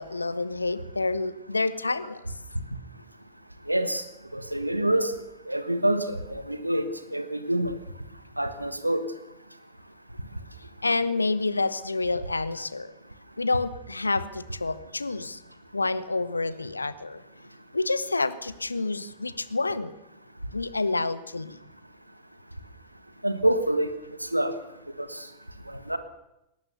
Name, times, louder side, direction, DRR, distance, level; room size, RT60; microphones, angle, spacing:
voice 1, 0.0-2.2 10.8-12.9 13.4-15.4 15.7-17.2 17.7-19.9 20.5-21.6, left 3 dB, 80° left, 16 dB, 1.0 m, -28 dB
voice 2, 3.7-4.0 4.3-5.1 5.5-6.8 7.1-7.8 8.4-9.0 23.2-23.9 24.2-24.6 25.0-25.2 25.7-26.0, right 1 dB, 85° right, 11 dB, 1.5 m, -26 dB
20.5 x 18.5 x 6.9 m, 0.88 s
figure-of-eight pair, 90°, 0 cm